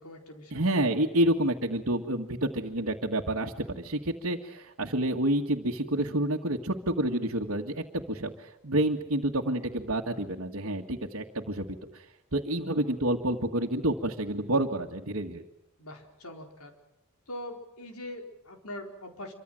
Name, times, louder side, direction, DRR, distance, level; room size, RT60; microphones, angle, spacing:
voice 1, 0.0-0.6 15.8-16.7 17.3-19.3, left 1 dB, 85° left, 4 dB, 4.3 m, -42 dB
voice 2, 0.5-12.0 12.3-15.4, right 1 dB, 65° right, -1 dB, 1.9 m, -29 dB
26.0 x 25.0 x 7.8 m, 0.85 s
head